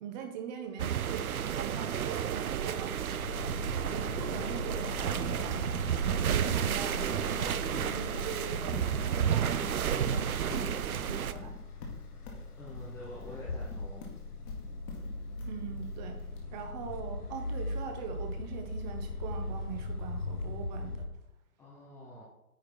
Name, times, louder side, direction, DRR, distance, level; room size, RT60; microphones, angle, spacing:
voice 1, 0.0-1.3 1.6-3.0 3.9-5.7 6.3-11.6 15.4-16.2 16.5-21.1, right 7 dB, 30° right, 5 dB, 1.3 m, -42 dB
sound 1, 0.8-11.3, right 9 dB, 70° right, 0.7 m, -31 dB
sound 2, 3.1-21.1, left 3 dB, 80° left, 1.4 m, -40 dB
Livestock farm animals working animals, 5.5-16.4, left 4 dB, 30° left, 1.9 m, -46 dB
voice 2, 12.6-14.1 21.6-22.2, equal, 5° left, -5 dB, 0.6 m, -46 dB
9.4 x 5.0 x 4.5 m, 0.92 s
figure-of-eight pair, 130°, 45 cm